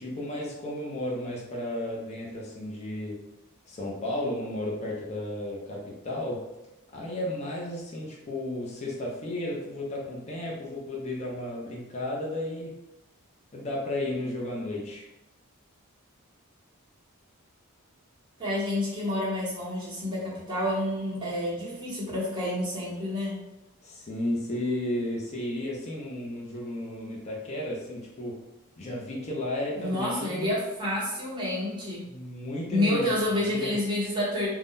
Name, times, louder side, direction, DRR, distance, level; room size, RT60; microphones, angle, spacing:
voice 1, 0.0-3.2 3.7-6.5 6.9-12.8 13.5-15.1 23.8-28.4 28.8-30.5 32.1-33.7, left 1 dB, 30° left, -3 dB, 0.5 m, -33 dB
voice 2, 18.4-23.3 29.8-32.0 32.7-34.5, left 1 dB, 20° right, -8 dB, 1.1 m, -29 dB
2.5 x 2.2 x 3.5 m, 0.96 s
head